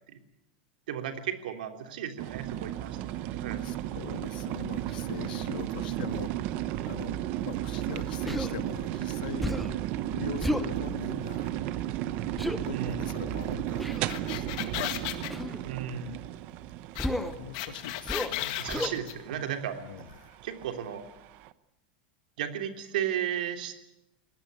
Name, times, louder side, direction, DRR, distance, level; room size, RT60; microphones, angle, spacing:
voice 1, 0.9-3.7 12.7-13.0 15.6-16.2 18.6-19.8 20.4-21.0 22.4-23.7, right 9 dB, 70° right, 6 dB, 3.3 m, -34 dB
sound 1, 2.2-21.5, right 13 dB, 35° right, 0.8 m, -34 dB
voice 2, 3.6-6.3 6.8-9.7 10.0-11.5 12.5-15.4 17.0-18.7 19.8-20.4, left 10 dB, 75° left, 10 dB, 1.7 m, -42 dB
Human voice, 8.3-8.5 9.4-9.8 10.4-10.7 12.4-12.6 13.8-14.1 15.3-15.6 17.0-17.4 18.1-18.4 18.7-19.0, left 1 dB, ahead, 0.9 m, -32 dB
sound 2, 13.9-15.3 17.0-17.1 17.3-19.1, left 15 dB, 45° left, 1.8 m, -34 dB
22.5 x 18.5 x 9.6 m, 0.83 s
supercardioid pair, 180°, 5 cm